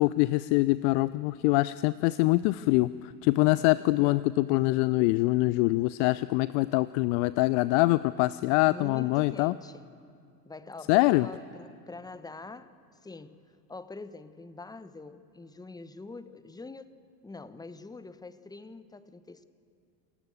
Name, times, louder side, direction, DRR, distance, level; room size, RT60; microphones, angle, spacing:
voice 1, 0.0-9.5 10.9-11.3, left 20 dB, 45° left, 18 dB, 0.5 m, -24 dB
voice 2, 8.6-9.9 10.4-12.7 13.0-13.4 13.7-17.0 17.2-19.4, left 3 dB, 10° left, 13 dB, 1.0 m, -44 dB
28.0 x 14.5 x 8.6 m, 2.3 s
figure-of-eight pair, 70°, 50 cm